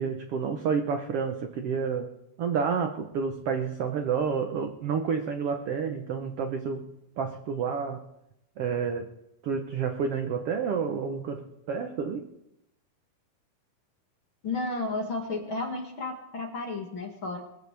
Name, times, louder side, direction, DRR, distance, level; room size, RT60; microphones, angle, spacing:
voice 1, 0.0-2.1 2.4-8.0 8.6-9.1 9.4-12.3, right 6 dB, 80° right, 5 dB, 1.3 m, -29 dB
voice 2, 14.4-17.4, left 2 dB, 40° left, 1 dB, 2.5 m, -32 dB
22.0 x 15.0 x 3.5 m, 0.84 s
omnidirectional pair, 4.0 m